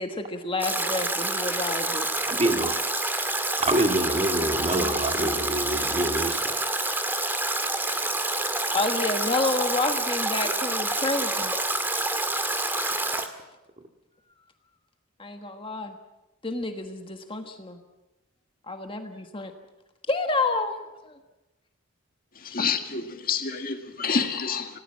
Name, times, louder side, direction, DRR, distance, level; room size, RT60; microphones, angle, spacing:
voice 1, 0.0-2.4 8.7-11.5 15.2-15.9 16.4-17.8 18.7-19.5 20.1-21.1, left 3 dB, 25° left, 5 dB, 1.5 m, -29 dB
Stream / Drip / Trickle dribble, 0.6-13.3, right 2 dB, 10° right, 1.9 m, -27 dB
voice 2, 2.3-2.8 3.6-6.4 13.1-13.2, right 1 dB, 30° right, 5 dB, 2.1 m, -26 dB
voice 3, 22.5-24.7, left 5 dB, 40° left, 6 dB, 2.0 m, -28 dB
28.0 x 18.5 x 7.4 m, 1.0 s
head